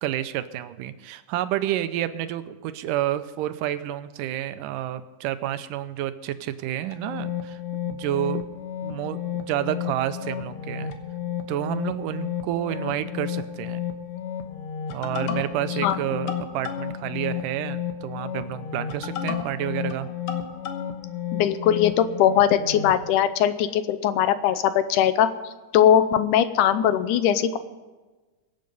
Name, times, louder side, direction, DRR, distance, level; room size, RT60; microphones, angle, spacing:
voice 1, 0.0-7.6 7.9-8.4 8.8-10.9 11.5-13.8 14.9-20.1, right 12 dB, 90° right, 12 dB, 2.3 m, -29 dB
sound 1, 6.9-23.0, left 9 dB, 55° left, 1.7 m, -32 dB
voice 2, 21.3-25.3 25.7-27.6, left 10 dB, 80° left, 12 dB, 2.2 m, -20 dB
23.0 x 7.8 x 5.4 m, 1.2 s
omnidirectional pair, 3.7 m